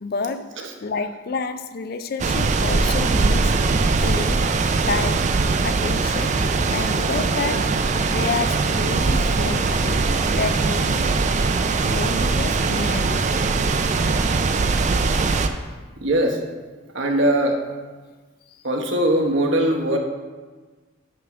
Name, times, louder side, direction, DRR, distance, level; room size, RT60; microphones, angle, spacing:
voice 1, 0.0-0.5 0.8-3.6 4.0-4.5 4.9-5.3 5.6-7.8 8.1-10.1 10.4-11.1 11.8-13.4 18.5-18.6, left 4 dB, 45° left, 10 dB, 0.4 m, -29 dB
sound 1, 2.2-15.5, right 4 dB, 35° right, 0.3 m, -21 dB
voice 2, 16.0-16.4 16.9-17.6 18.6-20.0, right 1 dB, 65° right, 2 dB, 1.0 m, -20 dB
8.8 x 3.5 x 6.0 m, 1.3 s
head